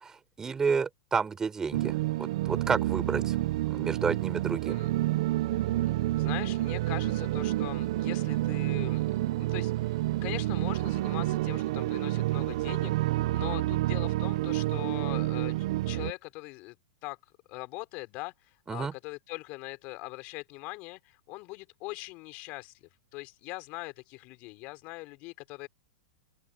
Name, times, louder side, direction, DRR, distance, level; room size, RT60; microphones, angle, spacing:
voice 1, 0.0-3.4 3.7-4.8 18.7-18.9, right 5 dB, 15° right, 4.9 m, -31 dB
sound 1, 1.7-16.1, right 16 dB, 65° right, 1.0 m, -29 dB
voice 2, 5.9-9.0 9.4-15.5 15.9-16.8 17.0-17.2 17.5-18.3 18.7-22.7 23.1-25.7, left 24 dB, 45° left, 4.8 m, -41 dB
open air
hypercardioid pair, 120°, 3 cm